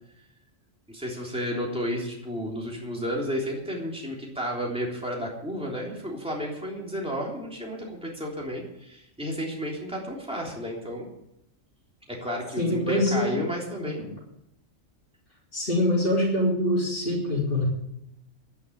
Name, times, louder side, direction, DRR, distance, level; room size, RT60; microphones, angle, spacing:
voice 1, 0.9-11.1 12.1-14.0, equal, 5° right, -2 dB, 3.5 m, -32 dB
voice 2, 12.6-13.4 13.8-13.9 15.5-17.6, left 1 dB, 45° left, -6 dB, 3.8 m, -24 dB
11.0 x 10.5 x 8.5 m, 0.79 s
omnidirectional pair, 1.3 m